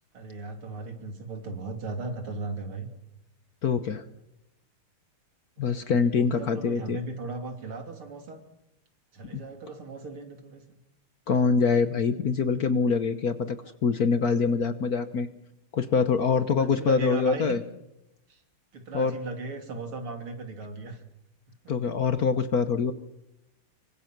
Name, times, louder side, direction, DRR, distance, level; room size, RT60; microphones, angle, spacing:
voice 1, 0.1-2.9 5.7-8.4 9.1-10.8 16.6-17.6 18.3-18.4 18.7-21.0 21.5-21.6, right 3 dB, 90° right, 5 dB, 3.8 m, -37 dB
voice 2, 3.6-4.0 5.6-7.0 9.3-9.4 11.3-15.3 15.7-17.6 18.9-19.1 21.7-22.9, left 5 dB, 50° left, 11 dB, 1.3 m, -24 dB
25.5 x 24.5 x 6.0 m, 0.88 s
omnidirectional pair, 2.3 m